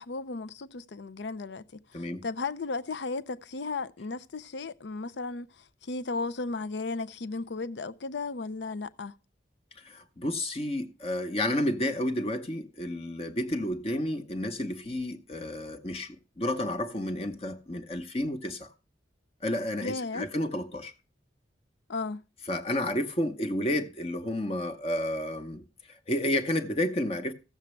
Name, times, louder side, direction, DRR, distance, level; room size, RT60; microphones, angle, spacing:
voice 1, 0.0-5.5 5.8-9.2 19.8-20.3 21.9-22.2, left 3 dB, 75° left, 0.6 m, -35 dB
voice 2, 1.9-2.2 9.8-18.7 19.4-20.9 22.5-27.3, left 1 dB, 35° left, 0.9 m, -31 dB
15.0 x 7.3 x 3.1 m
head